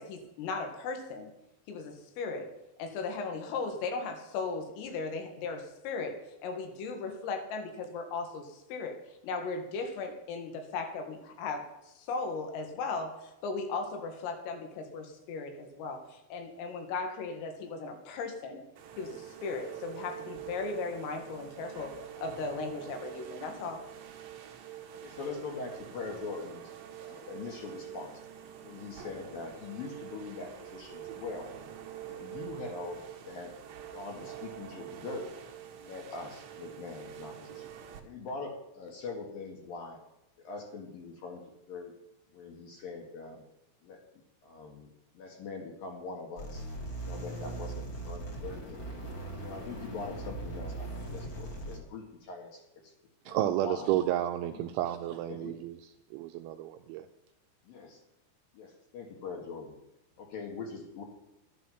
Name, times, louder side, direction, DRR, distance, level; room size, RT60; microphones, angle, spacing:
voice 1, 0.0-1.3 1.7-2.5 2.8-9.0 9.2-18.6 19.0-23.8, left 4 dB, 80° left, 5 dB, 4.3 m, -37 dB
sound 1, 18.8-38.0, right 10 dB, 70° right, 2.3 m, -46 dB
voice 2, 25.0-26.7 27.0-28.1 28.6-31.5 32.0-33.5 33.9-35.3 35.8-37.7 38.0-40.0 40.4-41.4 41.7-41.9 42.3-43.5 43.8-44.0 44.4-46.6 47.0-48.9 49.4-52.9 53.3-53.9 54.4-54.7 55.3-55.6 57.6-58.0 58.5-59.7 60.2-61.0, left 4 dB, 60° left, 2 dB, 2.8 m, -42 dB
sound 2, 46.4-51.8, right 2 dB, 35° left, 1.9 m, -39 dB
voice 3, 53.3-55.8 56.1-57.1, right 13 dB, 85° right, 6 dB, 2.7 m, -31 dB
12.0 x 11.0 x 5.7 m, 0.91 s
omnidirectional pair, 5.9 m